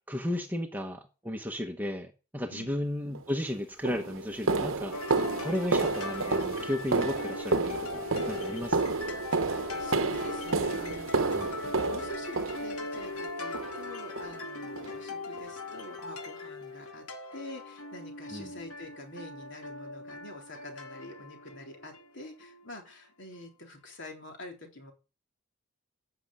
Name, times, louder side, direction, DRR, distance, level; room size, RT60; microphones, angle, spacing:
voice 1, 0.1-5.0 5.4-8.9 11.3-11.5 18.3-18.5, left 1 dB, 10° right, 1.0 m, -34 dB
sound 1, 3.2-3.3 3.9-13.1 13.5-13.9 14.2-14.4 14.8-14.9 15.4-15.5 16.0-16.1, right 3 dB, 65° right, 1.0 m, -30 dB
sound 2, 4.9-22.8, left 2 dB, 80° left, 2.3 m, -40 dB
voice 2, 9.4-24.9, left 1 dB, 55° left, 3.6 m, -47 dB
14.0 x 6.7 x 8.8 m
head